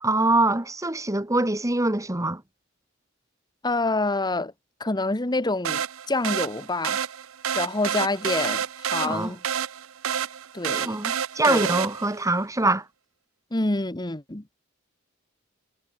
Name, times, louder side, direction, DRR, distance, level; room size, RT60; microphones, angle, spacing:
voice 1, 0.0-2.4 9.0-9.3 10.8-12.8, right 2 dB, 15° right, 1.5 m, -24 dB
voice 2, 3.6-4.5 4.8-7.0 7.5-9.4 10.5-11.0 11.4-11.7 13.5-14.4, left 2 dB, 20° left, 1.4 m, -27 dB
sound 1, 5.6-12.2, right 8 dB, 90° right, 0.8 m, -29 dB
head